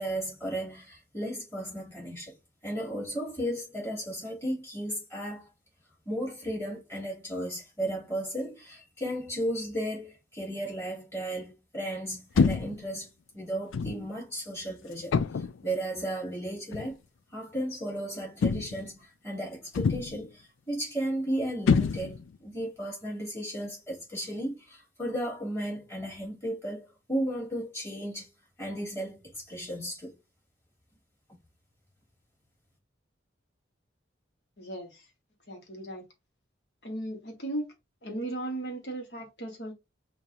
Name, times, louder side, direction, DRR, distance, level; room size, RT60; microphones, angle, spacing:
voice 1, 0.0-2.4 2.6-5.5 6.0-13.1 13.3-17.0 17.3-28.3 28.6-30.2, right 1 dB, 15° left, 3.3 m, -34 dB
sound 1, 12.4-12.8 13.7-14.0 15.1-15.6 16.7-16.9 18.4-18.9 19.7-20.3 21.7-22.3, left 5 dB, 80° left, 0.4 m, -26 dB
voice 2, 34.6-35.0 35.5-36.0 36.8-37.7 38.0-39.7, right 1 dB, 55° left, 1.5 m, -36 dB
7.0 x 2.6 x 2.8 m
head